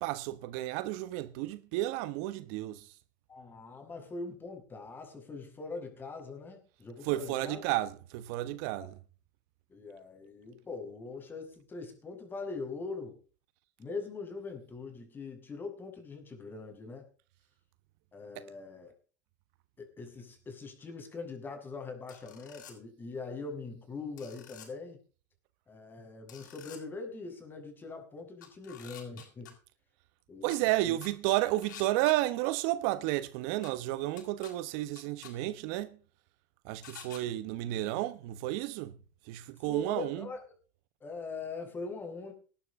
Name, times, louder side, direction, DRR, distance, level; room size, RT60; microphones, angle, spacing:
voice 1, 0.0-2.9 7.0-9.0 18.3-18.4 30.4-35.9 36.6-38.9 39.3-40.3, right 16 dB, 60° right, 1.1 m, -32 dB
voice 2, 3.3-7.6 8.8-8.9 9.7-13.2 13.8-17.1 18.1-18.9 19.8-25.0 25.7-29.5 30.3-31.0 39.7-40.4 41.0-42.3, left 3 dB, 20° left, 6.6 m, -42 dB
sound 1, 22.1-22.7 24.2-24.7 26.3-26.8 28.4-29.5 30.5-30.6 31.0-32.2 33.6-33.7 34.2-34.5 35.0-35.3 36.8-37.2, left 9 dB, 85° left, 7.1 m, -49 dB
19.5 x 11.5 x 3.7 m
supercardioid pair, 115°, 10 cm